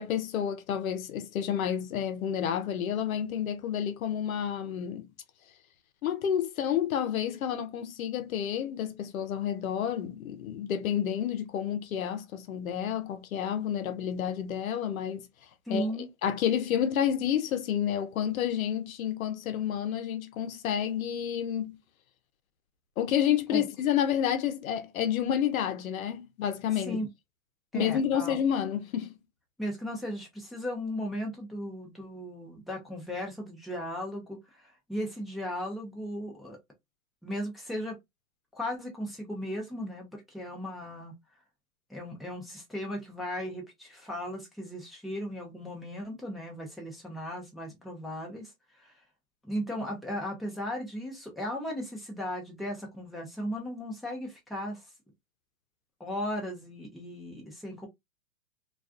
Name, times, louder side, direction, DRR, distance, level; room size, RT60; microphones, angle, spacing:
voice 1, 0.0-5.1 6.0-15.3 15.7-21.8 23.0-27.0 27.7-29.2, left 9 dB, 75° left, 0.7 m, -30 dB
voice 2, 15.7-16.1 23.5-23.7 26.9-27.1 27.7-28.4 29.6-36.6 37.2-38.0 38.5-41.1 41.9-48.5 48.8-48.9 49.4-54.8 56.0-57.9, equal, ahead, 0.6 m, -36 dB
2.3 x 2.3 x 2.4 m
hypercardioid pair, 120°, 42 cm